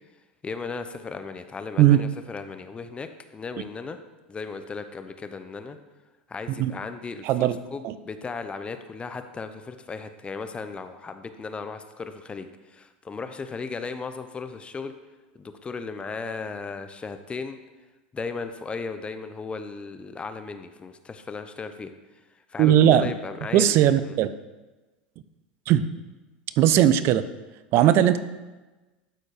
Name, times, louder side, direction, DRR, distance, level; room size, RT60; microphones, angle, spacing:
voice 1, 0.4-4.0 4.3-5.8 6.3-14.9 15.3-17.6 18.1-21.9 22.5-23.8 24.0-24.2 27.8-27.9, left 4 dB, 20° left, 9 dB, 0.7 m, -36 dB
voice 2, 7.2-7.6 7.8-7.9 22.6-23.1 23.5-24.3 25.7-25.8 26.6-27.2 27.7-28.2, right 11 dB, 50° right, 14 dB, 0.6 m, -18 dB
12.0 x 4.4 x 4.9 m, 1.2 s
hypercardioid pair, 95°, 5 cm